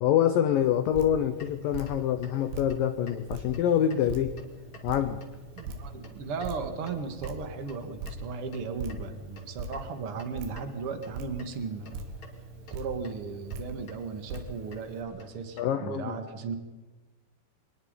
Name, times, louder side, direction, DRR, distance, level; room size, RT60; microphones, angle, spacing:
voice 1, 0.0-4.3 4.8-5.2 15.6-16.1, left 10 dB, 85° left, 10 dB, 2.0 m, -26 dB
Drip, 0.5-15.0, right 2 dB, 80° right, 4.4 m, -43 dB
sound 1, 1.3-15.6, right 1 dB, 35° left, 2.6 m, -49 dB
voice 2, 5.5-12.0 12.7-16.5, right 5 dB, 55° right, 7 dB, 1.6 m, -36 dB
24.5 x 20.5 x 5.2 m, 1.2 s
omnidirectional pair, 5.3 m